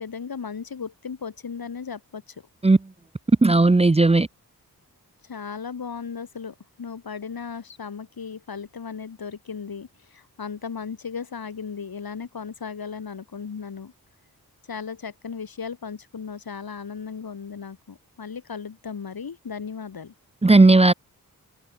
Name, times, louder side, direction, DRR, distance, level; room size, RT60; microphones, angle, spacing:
voice 1, 0.0-2.2 5.3-13.9 14.7-20.1, left 6 dB, 75° left, 5.4 m, -36 dB
voice 2, 3.4-4.3 20.4-20.9, right 3 dB, 15° right, 0.7 m, -15 dB
cardioid pair, 55°, 36 cm